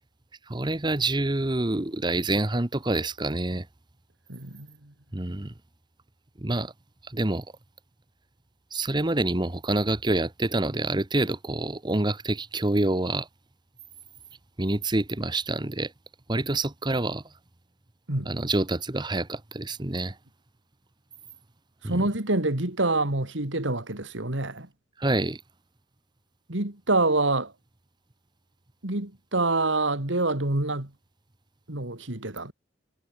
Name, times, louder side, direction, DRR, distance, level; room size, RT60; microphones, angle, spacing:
voice 1, 0.5-3.7 5.1-5.5 6.4-6.7 7.0-7.5 8.7-13.3 14.6-15.9 16.3-17.2 18.3-20.2 21.8-22.0 25.0-25.4, right 2 dB, 25° right, 1.0 m, -27 dB
voice 2, 4.3-4.9 18.1-18.3 21.8-24.7 26.5-27.5 28.8-30.9 31.7-32.5, right 2 dB, 75° right, 2.8 m, -26 dB
head